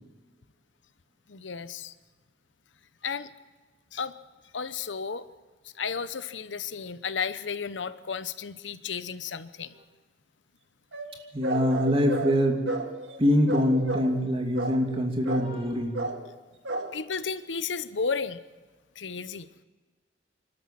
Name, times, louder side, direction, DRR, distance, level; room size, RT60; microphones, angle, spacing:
voice 1, 1.3-1.9 3.0-3.3 3.9-4.1 4.5-5.2 5.8-9.7 16.9-18.4 19.0-19.5, left 5 dB, 85° left, 14 dB, 0.9 m, -33 dB
sound 1, 10.9-13.2 13.5-14.3 14.6-15.0 15.3-15.7 15.9-16.3 16.7-17.0 17.3-17.4 17.6-17.7, right 2 dB, 90° right, 2.0 m, -33 dB
voice 2, 11.3-12.7 13.2-16.0, equal, 30° right, 2 dB, 2.7 m, -24 dB
28.0 x 12.5 x 7.5 m, 1.3 s
head